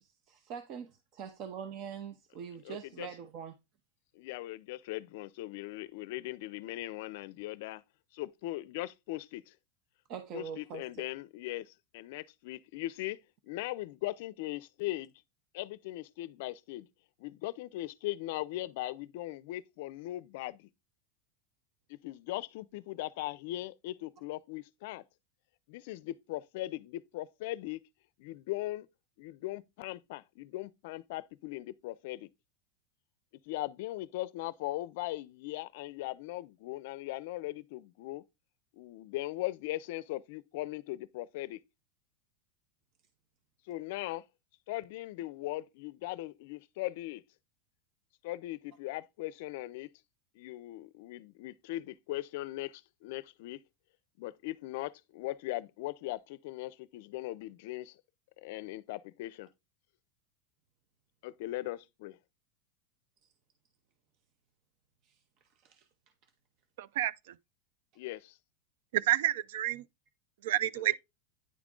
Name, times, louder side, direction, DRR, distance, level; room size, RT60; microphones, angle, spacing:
voice 1, 0.0-3.5 10.1-10.9 63.2-63.3 65.0-65.2 65.6-65.9, right 7 dB, 40° right, 0.7 m, -43 dB
voice 2, 2.6-3.1 4.2-7.8 8.2-9.5 10.3-13.2 13.4-15.1 15.5-16.9 17.2-20.7 21.9-25.0 25.7-27.8 28.2-28.9 29.2-32.3 33.5-38.2 38.7-41.6 43.7-44.2 44.7-47.2 48.2-49.9 50.4-53.6 54.2-57.9 58.4-59.5 61.2-62.2 68.0-68.3, left 16 dB, 60° left, 0.5 m, -39 dB
voice 3, 66.8-67.1 68.9-69.8 70.4-71.0, right 13 dB, 75° right, 0.4 m, -29 dB
9.5 x 3.6 x 3.7 m
supercardioid pair, 160°, 0 cm